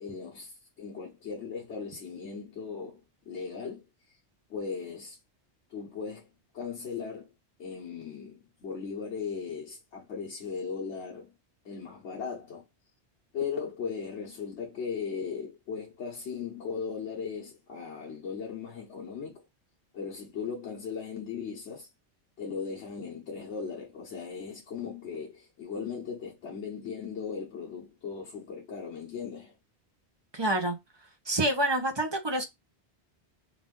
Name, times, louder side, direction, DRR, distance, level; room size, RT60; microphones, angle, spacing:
voice 1, 0.0-3.0 3.2-3.8 4.5-5.2 5.7-6.3 6.5-7.3 7.6-11.3 11.6-12.6 13.3-19.4 19.9-21.9 22.4-29.5, left 6 dB, 80° left, 1.2 m, -37 dB
voice 2, 30.3-30.8 31.3-32.5, right 1 dB, 25° right, 0.7 m, -27 dB
4.0 x 2.5 x 3.6 m
omnidirectional pair, 1.1 m